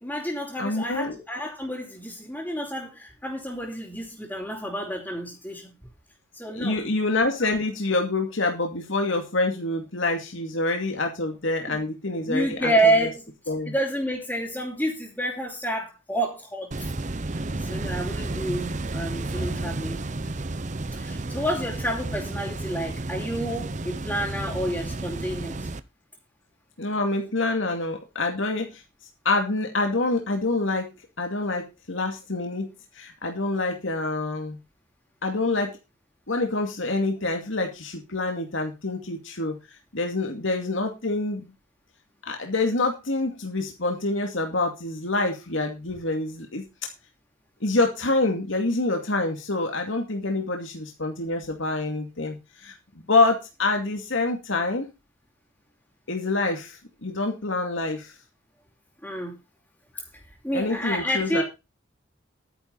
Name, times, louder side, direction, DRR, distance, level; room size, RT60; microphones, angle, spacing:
voice 1, 0.0-5.7 6.3-6.8 11.7-11.8 12.3-13.2 13.6-16.9 17.3-20.0 20.9-25.7 59.0-59.3 60.4-61.4, right 1 dB, 10° left, -5 dB, 3.2 m, -29 dB
voice 2, 0.6-1.2 6.5-13.1 13.5-13.7 26.8-28.8 29.2-30.9 31.2-32.7 32.9-34.6 35.2-35.8 36.3-39.6 39.9-41.5 42.3-46.6 47.6-52.7 53.1-54.9 56.1-58.1 60.5-61.4, left 2 dB, 75° left, 3 dB, 2.4 m, -26 dB
sound 1, 16.7-25.8, right 2 dB, 35° right, 0.7 m, -32 dB
12.0 x 10.0 x 4.1 m, 0.26 s
head